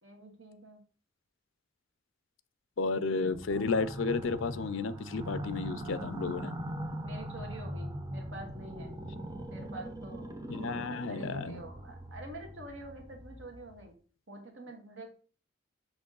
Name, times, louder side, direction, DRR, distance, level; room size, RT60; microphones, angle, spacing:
voice 1, 0.0-0.8 7.0-8.9 9.5-13.9 14.3-15.1, right 1 dB, 65° right, 2 dB, 1.9 m, -47 dB
voice 2, 2.8-6.5 10.5-11.6, left 4 dB, 75° left, 14 dB, 0.5 m, -32 dB
sound 1, 3.3-13.8, right 1 dB, 20° right, 0.8 m, -41 dB
6.1 x 6.0 x 3.9 m, 0.40 s
head